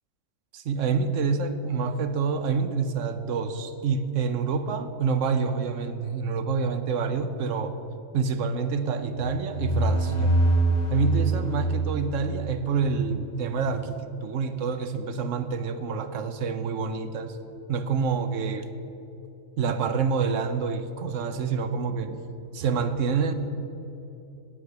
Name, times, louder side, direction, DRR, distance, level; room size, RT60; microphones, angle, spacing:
voice 1, 0.5-7.8 8.1-10.4 10.9-17.4 17.7-18.7 19.6-22.2 22.5-23.3, right 5 dB, 75° right, 10 dB, 1.1 m, -27 dB
sound 1, 9.2-12.9, right 1 dB, 45° left, 2.2 m, -25 dB
16.5 x 5.9 x 6.8 m, 2.9 s
omnidirectional pair, 1.3 m